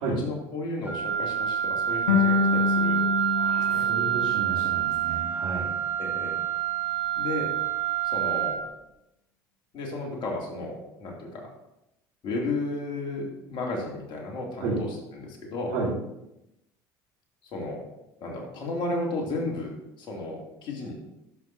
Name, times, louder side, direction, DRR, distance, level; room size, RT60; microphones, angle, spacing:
voice 1, 0.2-3.1 3.6-3.8 6.0-6.4 7.2-7.5 8.1-8.6 9.7-11.5 12.2-14.9 15.1-15.7 17.5-17.8 18.2-20.9, left 2 dB, 55° left, -1 dB, 2.7 m, -33 dB
Wind instrument woodwind instrument, 0.9-8.6, right 10 dB, 15° right, 2.6 m, -27 dB
sound 1, 2.1-5.2, left 5 dB, 85° left, 1.1 m, -27 dB
voice 2, 3.4-5.8 14.6-14.8 15.7-15.9, right 3 dB, 70° right, -8 dB, 3.0 m, -32 dB
12.5 x 6.0 x 2.7 m, 0.87 s
hypercardioid pair, 70°, 10 cm